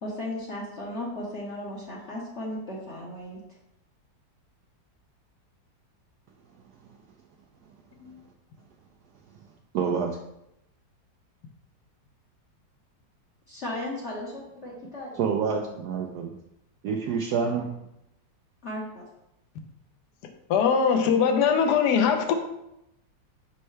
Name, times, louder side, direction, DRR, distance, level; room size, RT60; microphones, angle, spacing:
voice 1, 0.0-3.4 13.5-15.6 18.6-19.1, left 1 dB, 45° left, -4 dB, 1.0 m, -36 dB
voice 2, 9.7-10.2 15.2-16.3 16.8-17.7, right 6 dB, 70° right, 2 dB, 1.0 m, -27 dB
voice 3, 20.5-22.3, left 6 dB, 70° left, 6 dB, 1.2 m, -21 dB
5.5 x 5.4 x 3.2 m, 0.83 s
omnidirectional pair, 2.0 m